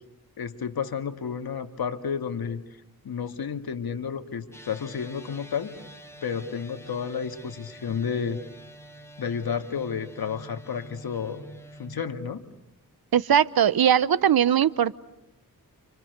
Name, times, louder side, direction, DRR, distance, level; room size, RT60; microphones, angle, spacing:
voice 1, 0.4-2.6 3.0-5.7 6.2-8.4 9.2-11.5 11.8-12.4, left 6 dB, 75° left, 7 dB, 2.1 m, -31 dB
sound 1, 4.5-12.0, right 1 dB, 5° left, 6.0 m, -47 dB
voice 2, 13.1-14.9, right 9 dB, 75° right, 17 dB, 1.0 m, -20 dB
30.0 x 28.5 x 6.8 m, 0.84 s
cardioid pair, 75°, 37 cm